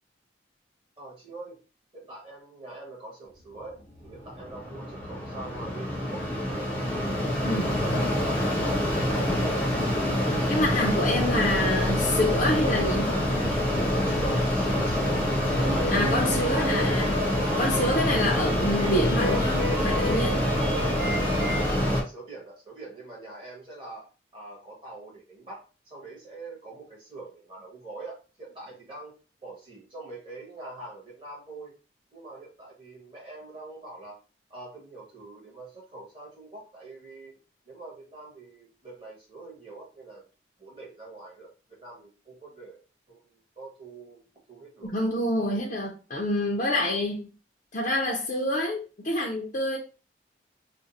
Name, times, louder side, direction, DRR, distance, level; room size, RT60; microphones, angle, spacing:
voice 1, 1.0-1.6 1.9-6.7 7.0-8.9 14.0-16.3 20.6-20.8 21.8-29.1 29.4-31.7 32.1-34.2 34.5-37.3 37.6-40.3 40.6-41.5 41.8-42.8 43.1-44.2 44.5-44.9 46.9-47.0, right 2 dB, 30° right, 1.6 m, -43 dB
Mechanisms, 4.0-22.0, left 1 dB, 10° left, 0.8 m, -26 dB
voice 2, 10.5-13.2 15.9-20.4 44.8-47.3 47.7-49.8, left 1 dB, 45° left, 0.6 m, -27 dB
sound 1, 15.5-21.8, equal, 65° right, 2.1 m, -34 dB
5.1 x 2.2 x 2.7 m
head